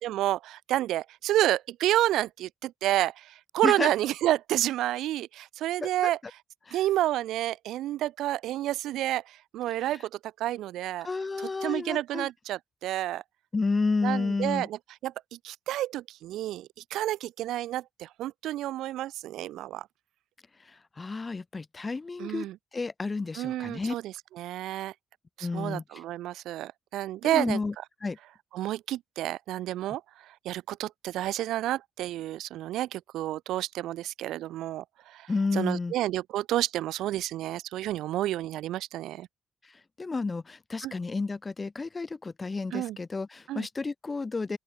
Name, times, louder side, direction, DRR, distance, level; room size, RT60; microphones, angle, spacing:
voice 1, 0.0-6.2 6.7-10.0 10.4-11.1 11.4-13.2 14.0-14.8 15.0-19.9 22.2-22.6 23.4-24.9 25.4-27.6 28.5-39.3 40.8-40.9 42.7-43.0 43.5-43.7, right 14 dB, 80° right, 4.3 m, -30 dB
voice 2, 11.0-12.3 13.5-14.7 20.6-22.5 22.7-23.9 25.4-26.0 27.2-27.7 28.0-28.2 35.3-35.9 40.0-44.6, left 3 dB, 35° left, 4.8 m, -31 dB
open air
supercardioid pair, 50°, 0 cm